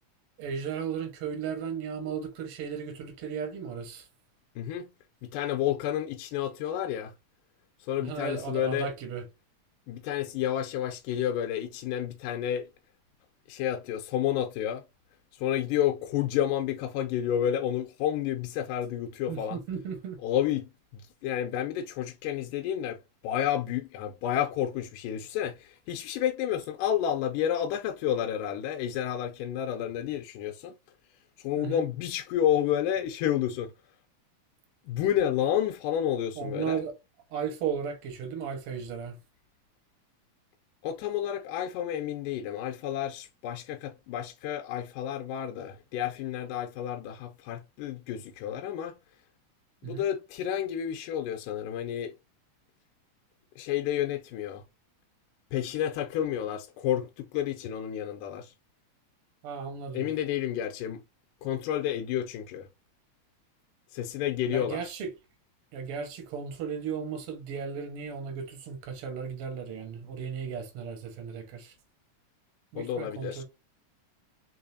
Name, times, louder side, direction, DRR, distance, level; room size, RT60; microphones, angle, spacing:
voice 1, 0.4-4.1 8.0-9.2 19.3-20.2 31.6-31.8 36.4-36.9 37.3-39.2 49.8-50.0 59.4-60.1 64.5-65.1 65.7-71.8 72.7-73.4, right 6 dB, 55° right, 1.8 m, -35 dB
voice 2, 4.6-4.9 5.2-7.1 7.8-8.9 9.9-12.7 13.5-14.8 15.3-19.6 20.2-30.8 31.4-33.7 34.8-36.8 40.8-49.0 49.8-52.2 53.6-54.6 55.5-58.5 59.9-61.0 61.4-62.7 63.9-64.8 72.8-73.4, left 10 dB, 85° left, 2.2 m, -30 dB
4.8 x 3.8 x 2.7 m
omnidirectional pair, 3.8 m